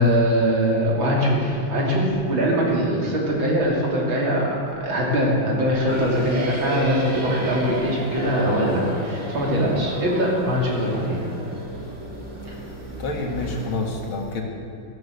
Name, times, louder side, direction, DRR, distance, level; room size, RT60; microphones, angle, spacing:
voice 1, 0.0-4.5 4.8-11.2 12.5-12.6, equal, 70° right, -3 dB, 3.8 m, -22 dB
sound 1, 5.9-13.8, right 1 dB, 35° right, 2.3 m, -31 dB
voice 2, 13.0-14.4, left 3 dB, 75° left, 0 dB, 2.8 m, -28 dB
15.0 x 12.5 x 6.6 m, 2.5 s
omnidirectional pair, 2.3 m